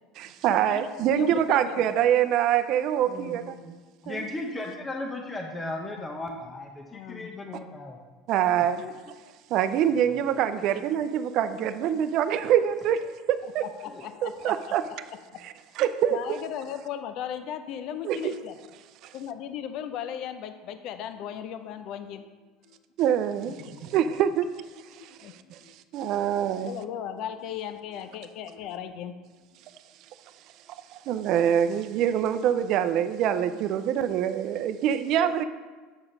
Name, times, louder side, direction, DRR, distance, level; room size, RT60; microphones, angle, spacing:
voice 1, 0.2-3.6 4.1-4.2 8.3-8.8 9.5-13.7 14.2-14.9 15.4-16.4 18.0-18.4 19.0-19.1 23.0-26.8 30.7-35.4, right 9 dB, 55° right, 10 dB, 0.5 m, -25 dB
voice 2, 1.1-1.8 6.9-7.4 13.8-14.7 15.3-15.4 16.1-18.5 19.1-22.3 22.7-22.8 23.7-23.9 24.9-25.3 25.6-25.7 26.7-29.2 35.2-35.3, left 9 dB, 60° left, 9 dB, 0.6 m, -37 dB
voice 3, 3.1-3.7 4.0-8.0 8.8-8.9 9.9-10.1 13.9-14.0, left 2 dB, 15° left, 1 dB, 0.9 m, -36 dB
7.4 x 4.9 x 5.4 m, 1.4 s
supercardioid pair, 120°, 0 cm